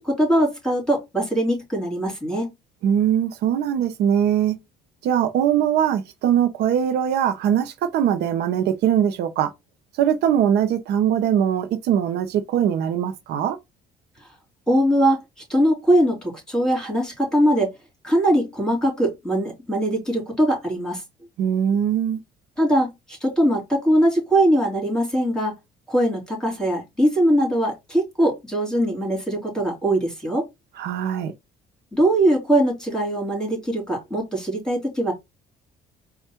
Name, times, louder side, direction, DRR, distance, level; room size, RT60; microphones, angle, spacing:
voice 1, 0.0-2.5 14.2-14.3 14.7-15.2 15.5-17.7 18.0-21.0 22.6-25.5 25.9-30.5 31.9-35.1, right 1 dB, 5° left, 3.1 m, -21 dB
voice 2, 2.8-4.6 5.0-9.5 10.0-13.6 21.4-22.2 30.8-31.3, right 9 dB, 75° right, 0.7 m, -21 dB
4.4 x 2.3 x 4.3 m
cardioid pair, 110°, 17 cm